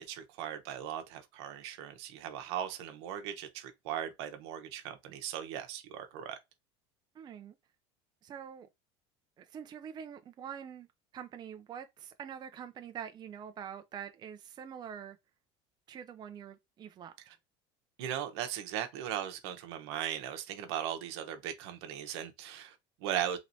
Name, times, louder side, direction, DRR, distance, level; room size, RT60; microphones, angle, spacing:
voice 1, 0.0-6.4 18.0-23.4, right 10 dB, 80° right, 0.9 m, -38 dB
voice 2, 7.1-7.6 8.2-8.7 9.4-10.9 11.1-15.2 15.9-17.3, right 8 dB, 30° right, 0.5 m, -45 dB
3.1 x 3.0 x 2.7 m
supercardioid pair, 115°, 14 cm